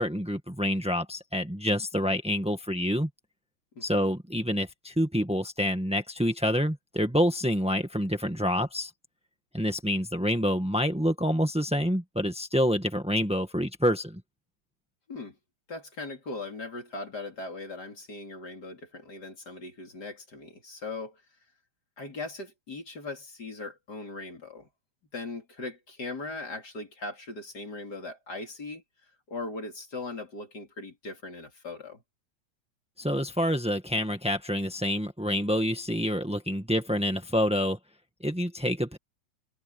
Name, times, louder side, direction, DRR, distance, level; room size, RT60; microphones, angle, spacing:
voice 1, 0.0-3.1 3.8-8.9 9.5-14.2 33.0-37.8 38.2-39.0, equal, 5° right, 0.4 m, -27 dB
voice 2, 3.8-4.1 15.1-15.4 15.7-21.2 22.0-24.7 25.1-28.8 29.3-32.0, left 3 dB, 35° left, 3.6 m, -39 dB
omnidirectional pair, 3.3 m